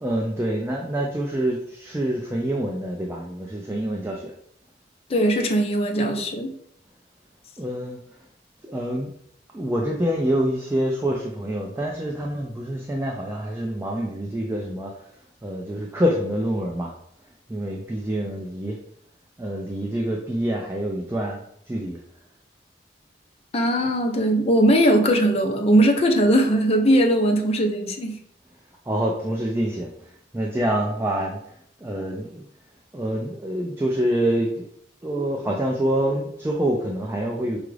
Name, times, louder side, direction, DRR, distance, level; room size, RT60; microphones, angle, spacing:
voice 1, 0.0-4.3 7.6-8.0 8.6-9.1 9.5-14.9 15.4-16.9 17.5-18.8 19.4-22.0 28.9-29.9 30.3-31.4 31.8-32.4 32.9-34.7 35.0-37.6, right 1 dB, 15° right, -1 dB, 0.4 m, -26 dB
voice 2, 5.1-6.5 23.5-28.2, right 1 dB, 35° left, 3 dB, 0.5 m, -19 dB
4.9 x 2.4 x 3.2 m, 0.69 s
head